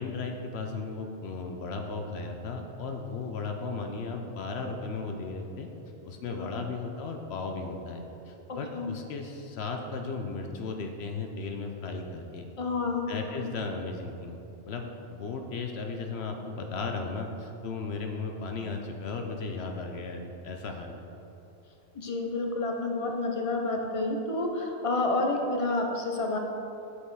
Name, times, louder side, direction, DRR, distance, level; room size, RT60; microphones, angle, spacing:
voice 1, 0.0-5.7 6.0-12.5 12.9-14.4 14.6-21.0, left 4 dB, 70° left, 4 dB, 0.8 m, -36 dB
voice 2, 8.5-8.9 12.6-13.5 21.9-26.4, left 2 dB, 35° left, 2 dB, 0.7 m, -29 dB
6.5 x 5.4 x 4.7 m, 2.8 s
omnidirectional pair, 1.1 m